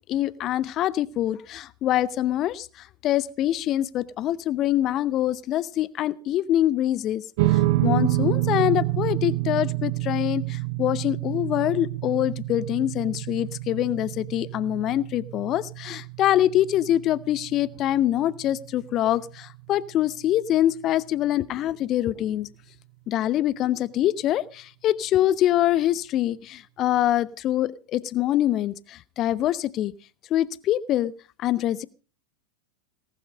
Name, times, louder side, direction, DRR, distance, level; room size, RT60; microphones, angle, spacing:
voice 1, 0.1-7.2 7.5-22.5 23.1-29.9 30.3-31.1 31.4-31.8, left 12 dB, 35° left, 21 dB, 0.8 m, -24 dB
sound 1, 7.4-19.9, right 17 dB, 50° right, 0.9 m, -28 dB
18.5 x 12.0 x 5.3 m, 0.37 s
figure-of-eight pair, 90°, 0 cm